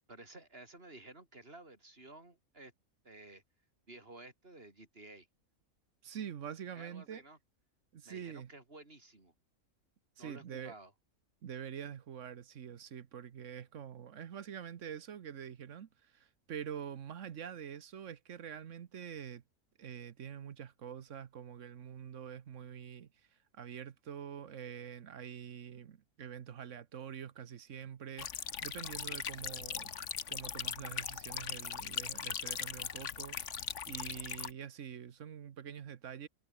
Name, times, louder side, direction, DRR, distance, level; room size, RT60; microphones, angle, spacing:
voice 1, 0.1-2.7 3.0-3.4 3.9-5.3 6.7-7.4 8.0-9.3 10.2-10.9, right 2 dB, 40° right, 5.5 m, -53 dB
voice 2, 6.0-7.2 7.9-8.5 10.2-10.7 11.4-19.4 19.8-23.3 23.5-29.9 30.3-36.3, right 8 dB, 60° right, 1.3 m, -46 dB
sound 1, 28.2-34.5, left 8 dB, 60° left, 1.4 m, -40 dB
omnidirectional pair, 1.5 m